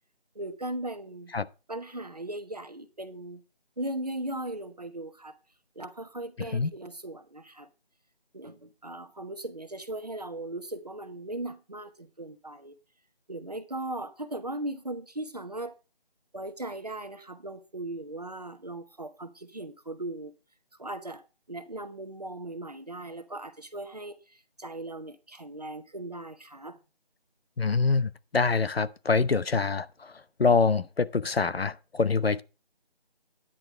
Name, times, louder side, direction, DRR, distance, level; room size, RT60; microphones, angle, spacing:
voice 1, 0.3-1.3 1.7-3.4 3.8-5.3 5.8-7.7 8.3-12.7 13.3-15.7 16.3-20.3 20.8-26.8, right 1 dB, 40° right, 1.0 m, -38 dB
voice 2, 27.6-30.1 30.4-32.4, left 4 dB, 75° left, 0.9 m, -25 dB
11.5 x 10.0 x 3.2 m
figure-of-eight pair, 180°, 31 cm